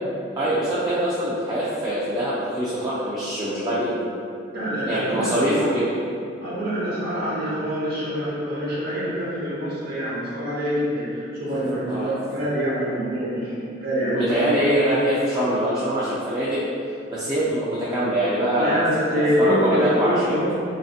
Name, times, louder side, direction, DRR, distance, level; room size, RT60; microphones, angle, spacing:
voice 1, 0.4-3.9 4.8-5.9 11.9-12.1 14.1-16.6 17.1-18.8 19.1-20.3, right 1 dB, 20° right, -9 dB, 0.3 m, -23 dB
voice 2, 4.5-5.7 6.4-14.2 18.6-20.5, equal, 55° right, -7 dB, 0.8 m, -25 dB
3.2 x 2.0 x 2.6 m, 2.5 s
head